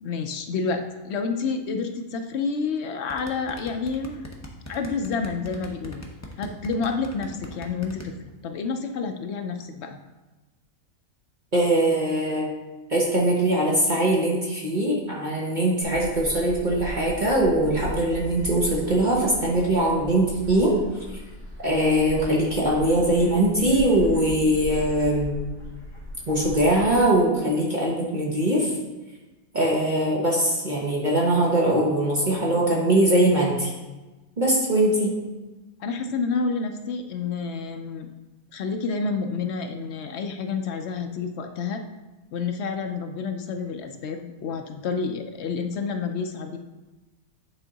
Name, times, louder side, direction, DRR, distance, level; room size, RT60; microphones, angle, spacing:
voice 1, 0.0-4.3 4.7-6.0 6.4-8.1 8.4-10.0 35.8-38.1 38.5-41.8 42.3-46.6, left 4 dB, 65° left, 6 dB, 0.7 m, -29 dB
sound 1, 3.1-8.1, left 1 dB, 20° left, 0.4 m, -40 dB
voice 2, 11.5-12.5 12.9-20.8 21.6-25.4 26.3-28.7 29.5-33.7 34.4-35.1, right 1 dB, 35° right, -4 dB, 1.1 m, -21 dB
Gull seagull, 15.8-27.0, left 1 dB, 45° left, 1.5 m, -38 dB
9.1 x 3.6 x 3.9 m, 1.1 s
omnidirectional pair, 1.5 m